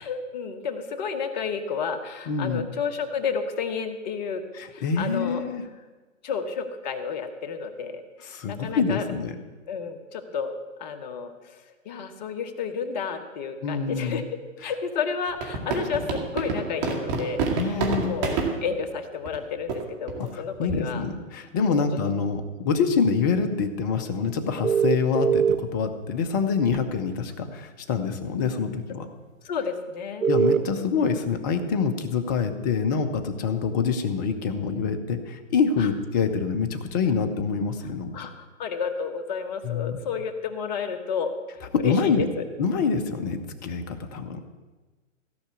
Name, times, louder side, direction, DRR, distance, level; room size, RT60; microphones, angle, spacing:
voice 1, 0.0-4.4 4.7-5.4 6.2-8.0 8.5-9.1 9.7-11.6 11.8-14.2 14.6-21.0 21.7-21.8 29.4-30.8 35.8-35.9 38.1-41.3 41.8-42.4, left 6 dB, 35° left, 6 dB, 1.1 m, -31 dB
voice 2, 2.3-2.6 4.5-5.6 8.3-9.3 13.6-14.2 17.6-18.1 20.6-29.1 30.3-38.1 39.6-39.9 41.7-42.2 42.6-44.4, left 5 dB, 15° left, 8 dB, 0.5 m, -26 dB
sound 1, 15.3-18.5 19.3-19.4 19.7-19.8 20.1-20.3 20.7-20.9, right 5 dB, 30° right, 2.3 m, -27 dB
sound 2, 24.6-25.6 26.7-26.8 30.2-30.6, right 7 dB, 85° right, 1.0 m, -21 dB
16.0 x 5.6 x 8.3 m, 1.3 s
hypercardioid pair, 145°, 40 cm